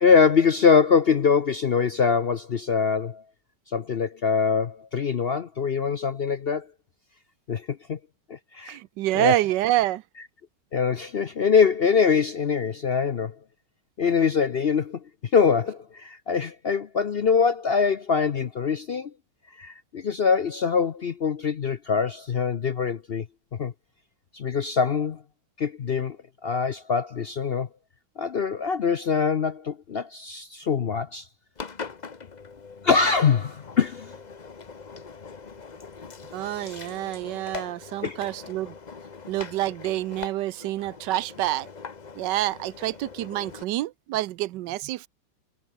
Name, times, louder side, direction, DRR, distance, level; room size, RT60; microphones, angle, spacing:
voice 1, 0.0-3.2 3.7-6.7 7.5-8.0 8.3-8.8 9.1-9.4 10.7-13.3 14.0-15.0 15.3-19.1 19.6-23.3 23.6-23.7 24.3-25.2 25.6-26.2 26.4-27.7 28.2-31.3 32.8-34.1 38.0-38.2, left 6 dB, 55° left, 0.7 m, -23 dB
voice 2, 8.7-10.0 36.3-38.7 39.3-41.7 42.2-45.1, right 15 dB, 90° right, 1.3 m, -27 dB
Engine, 31.6-43.6, left 5 dB, 30° left, 1.0 m, -42 dB
omnidirectional pair, 1.9 m